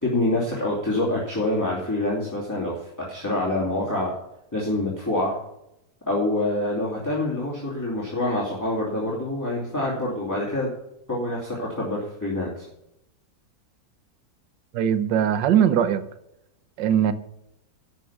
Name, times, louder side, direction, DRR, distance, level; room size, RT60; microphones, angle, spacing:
voice 1, 0.0-2.8 3.1-4.1 4.5-5.3 6.1-10.7 11.1-12.7, left 1 dB, 10° left, -6 dB, 2.9 m, -26 dB
voice 2, 14.7-16.0 16.8-17.1, right 9 dB, 85° right, 12 dB, 1.5 m, -20 dB
12.5 x 6.0 x 7.0 m, 0.82 s
omnidirectional pair, 1.9 m